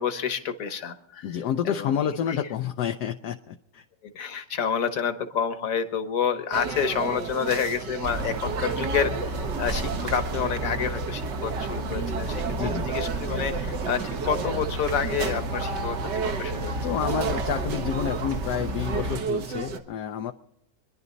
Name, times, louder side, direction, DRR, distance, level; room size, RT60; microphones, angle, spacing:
voice 1, 0.0-1.3 1.6-2.1 4.1-16.8, left 7 dB, 55° left, 8 dB, 1.6 m, -29 dB
voice 2, 1.2-3.8 12.5-12.9 16.8-20.3, left 9 dB, 75° left, 5 dB, 1.2 m, -29 dB
sound 1, 6.5-19.8, right 5 dB, 80° right, 1.9 m, -33 dB
sound 2, 8.0-19.2, right 2 dB, 50° right, 1.2 m, -32 dB
25.0 x 11.0 x 4.0 m, 0.80 s
omnidirectional pair, 1.8 m